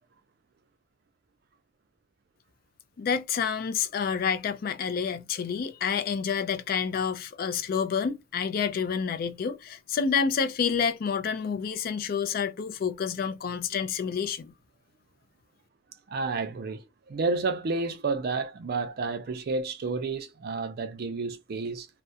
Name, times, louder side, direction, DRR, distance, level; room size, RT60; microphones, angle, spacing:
voice 1, 3.0-14.5, left 6 dB, 50° left, 0.3 m, -28 dB
voice 2, 16.1-21.9, right 3 dB, 55° right, 0.4 m, -30 dB
2.3 x 2.0 x 2.6 m
head